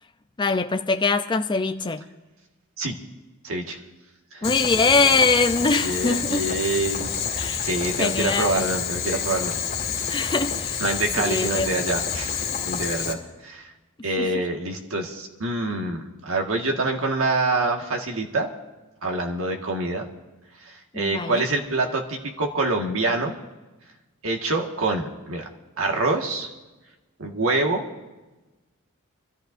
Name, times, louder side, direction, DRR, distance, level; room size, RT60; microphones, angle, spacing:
voice 1, 0.4-2.1 4.4-6.4 7.4-7.7 8.0-8.6 10.1-10.8 11.2-11.7 14.2-14.3 20.9-21.4, left 3 dB, 20° left, 6 dB, 0.5 m, -23 dB
voice 2, 3.4-3.8 4.3-4.5 5.6-9.6 10.0-10.2 10.8-13.2 13.4-13.7 14.0-18.5 19.0-20.1 20.6-23.4 24.2-25.5 25.8-26.5 27.2-27.9, right 2 dB, 65° right, 1 dB, 1.7 m, -26 dB
Boiling, 4.4-13.1, left 7 dB, 45° left, 1.9 m, -28 dB
25.5 x 13.5 x 2.7 m, 1.2 s
head